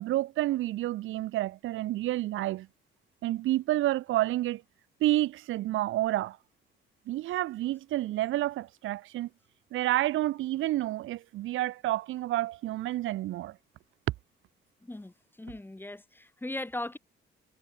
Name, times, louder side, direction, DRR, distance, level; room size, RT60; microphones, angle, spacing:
voice 1, 0.0-2.7 3.2-4.6 5.0-6.4 7.1-9.3 9.7-13.6, right 15 dB, 80° right, 0.9 m, -29 dB
voice 2, 14.8-17.0, left 1 dB, 10° left, 3.2 m, -38 dB
cardioid pair, 90°, 20 cm